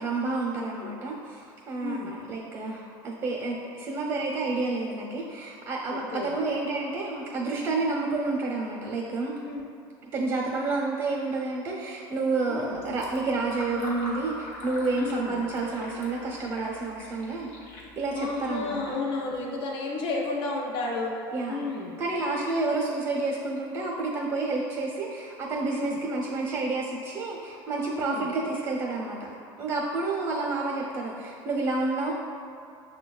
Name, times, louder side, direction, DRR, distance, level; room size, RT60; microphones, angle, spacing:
voice 1, 0.0-9.3 10.1-17.5 17.9-19.0 21.3-21.6 22.0-32.1, right 3 dB, 35° right, -4 dB, 0.6 m, -30 dB
voice 2, 0.5-0.9 1.8-2.1 5.9-6.4 9.4-9.6 12.5-12.8 15.0-15.4 17.8-21.2 21.5-22.0 22.6-22.7 25.7-26.0 27.9-28.3, left 3 dB, 50° left, -1 dB, 0.5 m, -33 dB
Fill (with liquid), 12.7-18.9, equal, 70° left, 1.1 m, -43 dB
6.2 x 2.2 x 2.3 m, 2.5 s
supercardioid pair, 125°, 11 cm